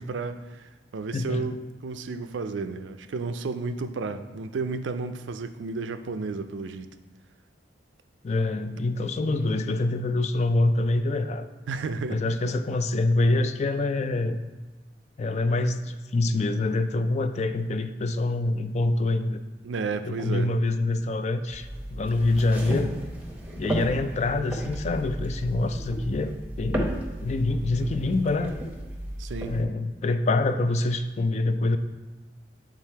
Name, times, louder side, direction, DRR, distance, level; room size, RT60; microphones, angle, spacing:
voice 1, 0.0-6.9 11.7-12.5 19.6-20.5 29.2-29.5, right 4 dB, 90° right, 10 dB, 0.4 m, -32 dB
voice 2, 1.1-1.5 8.2-11.5 12.1-14.4 15.2-19.4 20.0-22.9 23.6-27.0 27.2-28.5 29.5-31.8, left 2 dB, 40° left, 9 dB, 0.3 m, -25 dB
sound 1, 21.5-29.6, equal, 10° right, 0.8 m, -34 dB
7.6 x 3.6 x 4.5 m, 1.2 s
head